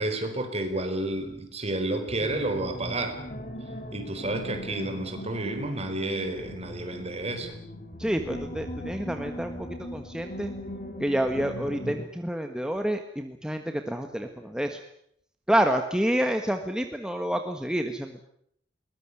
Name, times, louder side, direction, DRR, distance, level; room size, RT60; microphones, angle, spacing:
voice 1, 0.0-3.2 3.9-7.5, right 2 dB, 35° right, 7 dB, 4.5 m, -30 dB
sound 1, 2.1-12.0, equal, 45° left, 4.7 m, -39 dB
voice 2, 8.0-10.5 11.0-14.8 15.5-18.2, right 1 dB, 5° right, 5 dB, 1.6 m, -28 dB
22.0 x 20.0 x 9.7 m, 0.70 s
head